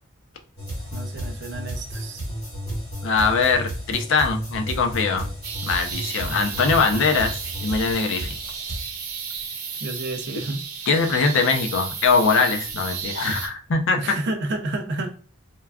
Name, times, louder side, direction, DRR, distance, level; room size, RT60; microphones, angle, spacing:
sound 1, 0.6-8.8, equal, 15° left, 1.1 m, -33 dB
voice 1, 0.9-2.3 9.8-10.6 14.0-15.2, right 2 dB, 55° right, 4 dB, 0.4 m, -30 dB
voice 2, 3.0-5.3 5.6-8.3 10.9-14.0, left 4 dB, 60° left, 5 dB, 0.5 m, -22 dB
sound 2, 5.4-13.5, right 6 dB, 90° right, 0.7 m, -33 dB
3.4 x 2.2 x 2.2 m, 0.41 s
head